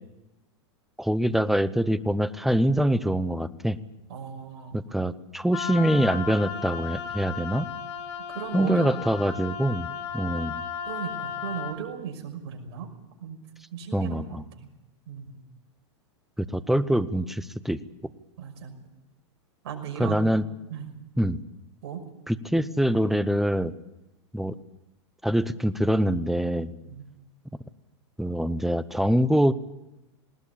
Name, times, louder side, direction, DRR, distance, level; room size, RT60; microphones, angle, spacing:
voice 1, 1.0-3.8 4.7-7.7 8.5-9.9 10.1-10.6 13.9-14.4 16.4-17.8 20.0-20.4 21.2-21.4 22.3-23.7 24.3-24.5 25.2-26.7 28.2-29.5, equal, ahead, 15 dB, 0.9 m, -24 dB
voice 2, 4.1-4.8 8.3-8.9 10.8-12.9 13.2-13.4 13.7-14.7 15.1-15.4 18.4-18.8 19.6-20.3 20.7-20.9 21.8-22.0 26.8-27.0, right 7 dB, 60° right, 5 dB, 5.9 m, -37 dB
Wind instrument woodwind instrument, 5.5-11.8, left 7 dB, 65° left, 2.4 m, -35 dB
20.0 x 19.0 x 8.7 m, 0.98 s
hypercardioid pair, 115°, 15 cm